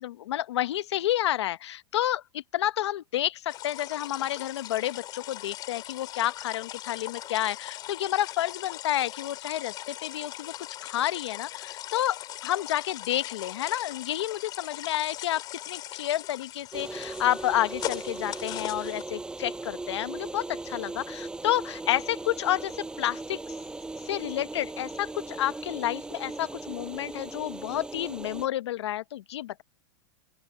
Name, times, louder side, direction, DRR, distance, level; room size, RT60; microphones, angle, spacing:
voice 1, 0.0-10.5 10.8-23.4 24.1-29.6, left 13 dB, 80° left, 1.0 m, -30 dB
sound 1, 3.5-19.0, left 14 dB, 30° left, 6.4 m, -40 dB
sound 2, 16.7-28.5, right 2 dB, 5° right, 6.3 m, -38 dB
open air
supercardioid pair, 160°, 14 cm